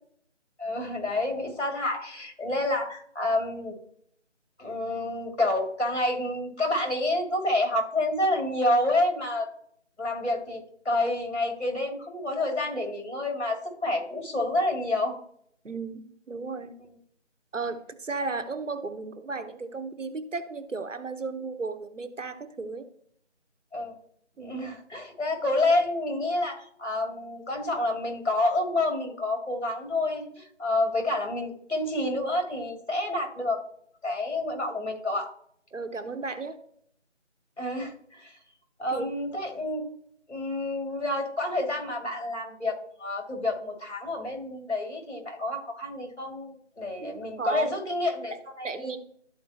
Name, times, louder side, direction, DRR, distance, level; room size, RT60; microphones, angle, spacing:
voice 1, 0.6-3.7 4.6-9.5 10.0-15.2 23.7-24.0 24.4-33.6 34.0-35.3 37.6-38.3 38.8-39.8 40.3-48.9, left 2 dB, 65° left, 2 dB, 2.7 m, -28 dB
voice 2, 15.6-16.7 17.5-22.9 24.4-24.6 35.7-36.6 38.9-39.0 47.0-47.7 48.3-48.4 48.6-49.0, right 4 dB, 90° right, 9 dB, 1.2 m, -34 dB
13.0 x 4.5 x 2.9 m, 0.66 s
figure-of-eight pair, 180°, 36 cm